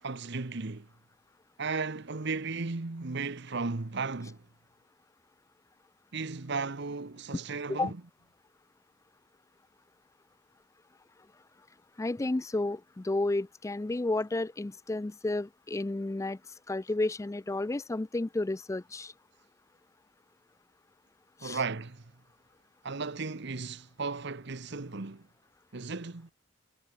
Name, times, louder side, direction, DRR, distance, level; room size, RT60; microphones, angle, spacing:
voice 1, 0.0-0.9 1.6-4.4 6.1-8.0 21.4-22.0 22.8-25.3 25.7-26.3, right 4 dB, 60° right, 1.1 m, -35 dB
voice 2, 12.0-16.4 16.7-19.1 21.4-21.6, left 2 dB, 15° left, 0.4 m, -31 dB
head